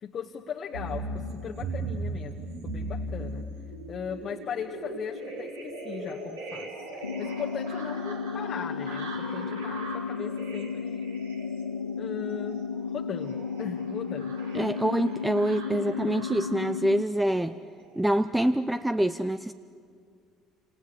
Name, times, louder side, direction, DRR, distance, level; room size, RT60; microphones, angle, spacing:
voice 1, 0.0-3.4 3.9-11.1 11.9-12.7 12.9-14.7 15.6-16.1, left 7 dB, 40° left, 1 dB, 1.5 m, -38 dB
sound 1, 0.7-16.6 17.3-18.0 18.4-18.6, right 1 dB, 70° right, 4.4 m, -39 dB
sound 2, 7.0-17.0, left 5 dB, 85° left, 0.7 m, -34 dB
voice 2, 14.5-17.6 18.0-19.5, right 1 dB, 5° right, 13 dB, 0.7 m, -26 dB
29.0 x 26.5 x 7.4 m, 2.3 s
figure-of-eight pair, 60°, 0 cm